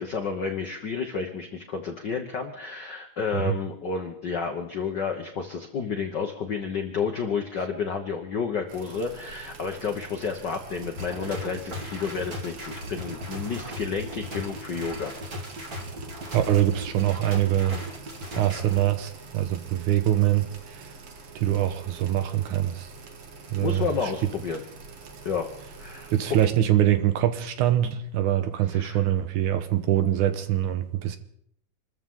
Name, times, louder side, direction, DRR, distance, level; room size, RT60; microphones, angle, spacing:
voice 1, 0.0-15.2 23.6-24.6 25.2-25.5 25.8-26.1 28.7-29.0, left 5 dB, 75° left, 0.9 m, -31 dB
sound 1, 8.7-26.5, right 4 dB, 50° right, 2.0 m, -45 dB
sound 2, 10.8-18.8, left 1 dB, 30° right, 2.6 m, -37 dB
voice 2, 16.3-17.8 18.4-20.9 21.4-22.9 23.5-24.1 26.1-31.2, right 12 dB, 75° right, 2.4 m, -24 dB
27.0 x 14.0 x 3.7 m
omnidirectional pair, 3.8 m